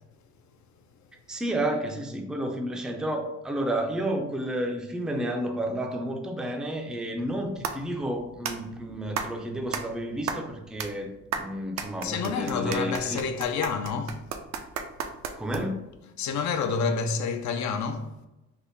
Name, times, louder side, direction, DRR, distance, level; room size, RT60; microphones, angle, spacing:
voice 1, 1.3-13.2 15.4-15.8, right 1 dB, ahead, 0.4 m, -31 dB
sound 1, 7.2-15.9, right 6 dB, 65° right, 0.5 m, -36 dB
voice 2, 12.0-14.3 16.2-18.1, left 5 dB, 70° left, 0.5 m, -28 dB
3.5 x 2.0 x 3.8 m
cardioid pair, 90°, 30 cm